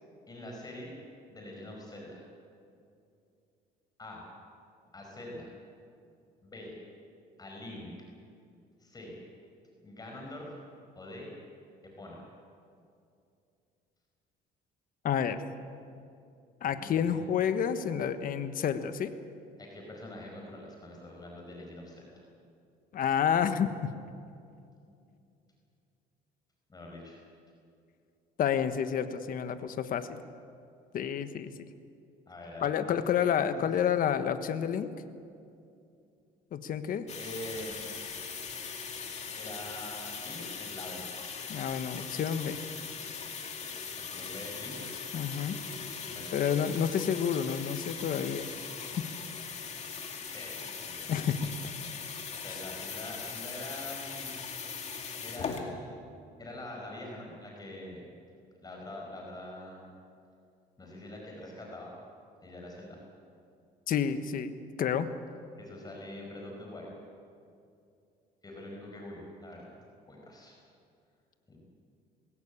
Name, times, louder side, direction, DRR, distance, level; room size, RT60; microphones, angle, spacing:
voice 1, 0.3-0.9 1.3-2.2 4.0-4.3 4.9-5.5 6.4-6.7 7.4-7.9 8.8-9.2 9.8-10.5 10.9-11.3 12.0-12.2 16.6-17.2 19.6-22.2 26.7-27.2 32.3-32.7 33.0-33.7 37.2-37.8 39.4-41.1 44.0-44.8 46.1-46.5 50.3-51.1 52.4-54.7 55.2-56.0 56.4-58.0 58.6-59.9 60.8-61.9 62.4-63.0 65.6-66.9 68.4-69.7 70.1-70.6 71.5-71.6, left 1 dB, 25° left, -1 dB, 5.1 m, -44 dB
voice 2, 15.0-15.4 16.6-19.1 22.9-23.9 28.4-30.2 30.9-31.5 32.6-34.9 36.5-37.1 41.5-42.6 45.1-45.6 46.3-48.5 48.9-49.1 51.1-51.5 63.9-64.5 64.8-65.1, left 8 dB, 55° left, 10 dB, 1.3 m, -29 dB
sound 1, 37.1-55.6, left 6 dB, 40° left, 2.5 m, -40 dB
21.0 x 17.0 x 8.5 m, 2.5 s
cardioid pair, 110°, 17 cm